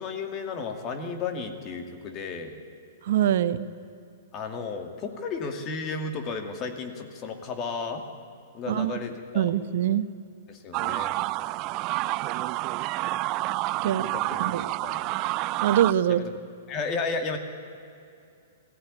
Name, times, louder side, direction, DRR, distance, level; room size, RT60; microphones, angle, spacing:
voice 1, 0.0-2.6 4.3-8.0 8.5-9.5 10.5-11.2 13.8-14.6 14.8-15.0 16.1-16.3 16.7-17.4, left 4 dB, 30° left, 5 dB, 2.4 m, -33 dB
voice 2, 3.0-3.7 8.7-8.9 9.3-10.1 13.8-14.1 14.4-14.7 15.6-16.2, right 11 dB, 65° right, 13 dB, 0.9 m, -24 dB
sound 1, 10.7-15.9, right 18 dB, 40° right, 0.4 m, -29 dB
18.0 x 15.5 x 9.9 m, 2.5 s
hypercardioid pair, 125°, 0 cm